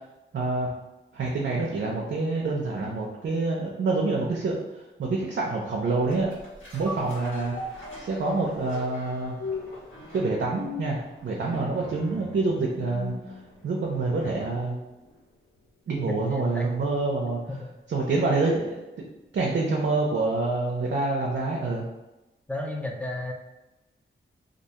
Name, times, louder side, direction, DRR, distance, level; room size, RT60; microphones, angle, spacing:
voice 1, 0.3-0.7 1.1-4.6 5.0-6.3 6.7-7.6 8.0-9.4 10.1-13.1 13.6-14.8 15.9-17.4 17.9-18.8 19.3-21.8, right 3 dB, 65° right, -2 dB, 0.5 m, -26 dB
sound 1, 6.1-14.7 15.1-15.2, left 2 dB, 80° left, 1.3 m, -39 dB
voice 2, 16.0-16.7 17.5-17.7 22.5-23.3, left 2 dB, 5° left, 2 dB, 0.5 m, -33 dB
2.4 x 2.2 x 2.8 m, 1.0 s
cardioid pair, 70°, 20 cm